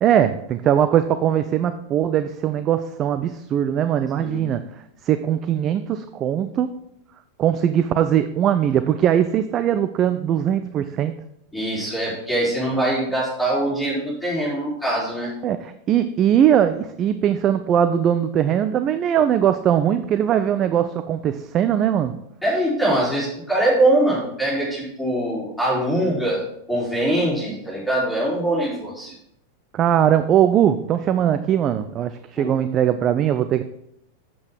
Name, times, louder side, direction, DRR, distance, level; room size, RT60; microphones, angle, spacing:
voice 1, 0.0-6.7 7.4-11.1 15.4-22.2 29.7-33.6, right 10 dB, 30° right, 10 dB, 0.4 m, -20 dB
voice 2, 4.2-4.5 11.5-15.3 22.4-26.4 26.7-29.1 32.4-32.5, right 1 dB, ahead, -7 dB, 3.9 m, -22 dB
8.5 x 7.3 x 4.7 m, 0.77 s
figure-of-eight pair, 90°, 0 cm